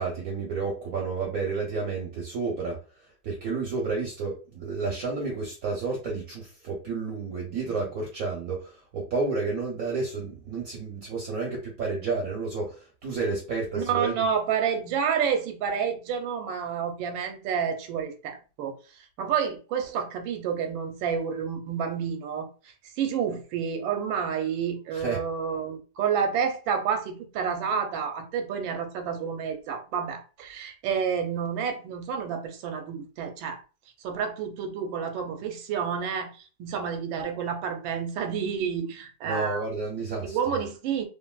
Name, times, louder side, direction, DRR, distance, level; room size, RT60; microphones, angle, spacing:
voice 1, 0.0-2.8 3.2-14.2 24.9-25.2 39.3-40.4, right 4 dB, 65° right, 0.9 m, -31 dB
voice 2, 13.7-18.7 19.2-22.5 23.0-33.6 34.0-39.6 40.2-41.1, right 7 dB, 85° right, 1.3 m, -29 dB
3.0 x 2.5 x 2.2 m
omnidirectional pair, 2.1 m